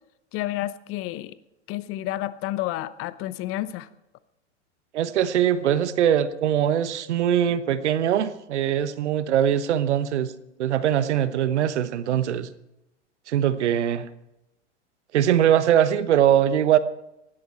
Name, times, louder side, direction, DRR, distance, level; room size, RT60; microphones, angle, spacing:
voice 1, 0.3-1.4 1.7-3.9, left 15 dB, 35° left, 16 dB, 0.9 m, -30 dB
voice 2, 4.9-10.3 10.6-12.5 13.3-14.1 15.1-16.8, right 10 dB, 70° right, 14 dB, 1.1 m, -22 dB
18.5 x 13.0 x 4.4 m, 0.89 s
hypercardioid pair, 100°, 36 cm